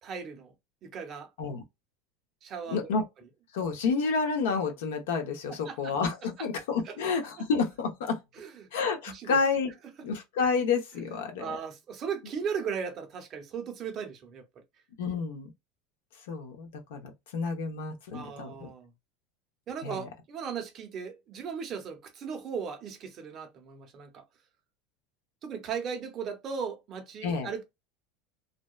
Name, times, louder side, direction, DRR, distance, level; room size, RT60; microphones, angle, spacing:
voice 1, 0.0-0.5 0.8-1.3 2.4-2.9 5.5-5.9 6.8-7.0 7.4-7.5 8.4-8.7 9.1-9.4 11.1-14.5 18.1-18.9 19.7-24.2 25.4-27.6, right 6 dB, 25° right, 0.6 m, -37 dB
voice 2, 2.7-3.0 3.5-8.2 8.7-9.7 10.0-11.6 15.0-15.5 16.3-18.7 19.8-20.0 27.2-27.5, left 5 dB, 85° left, 0.8 m, -30 dB
2.7 x 2.1 x 2.3 m
supercardioid pair, 170°, 0 cm